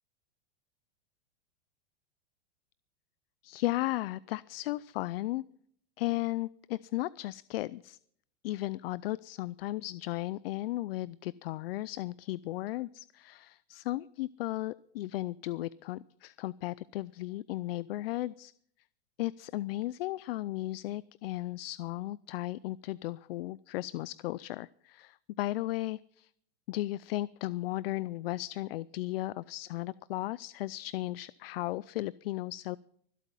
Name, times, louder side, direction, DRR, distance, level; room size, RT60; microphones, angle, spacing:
voice 1, 3.4-5.4 6.0-8.0 8.4-18.5 19.2-26.3 26.7-32.8, left 17 dB, 65° left, 21 dB, 0.5 m, -35 dB
24.0 x 8.4 x 5.4 m, 0.66 s
supercardioid pair, 140°, 32 cm